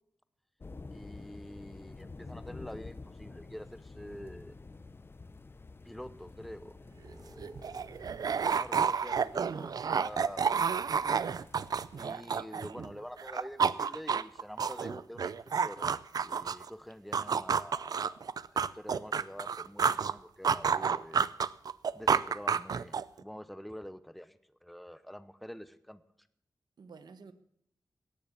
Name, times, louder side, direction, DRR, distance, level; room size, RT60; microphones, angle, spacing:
sound 1, 0.6-12.1, left 3 dB, 35° left, 0.7 m, -50 dB
voice 1, 0.9-4.6 5.8-8.1 8.4-10.9 12.0-15.3 15.6-15.9 16.2-21.3 21.9-26.0, equal, ahead, 14 dB, 0.8 m, -47 dB
sound 2, 7.0-7.1 7.4-12.9 13.2-16.7 17.1-20.1 20.4-23.2, right 6 dB, 65° right, 0.5 m, -30 dB
voice 2, 12.0-12.8 26.8-27.3, right 5 dB, 90° right, 11 dB, 1.2 m, -53 dB
18.0 x 7.0 x 8.5 m, 0.68 s
wide cardioid pair, 110°, 7 cm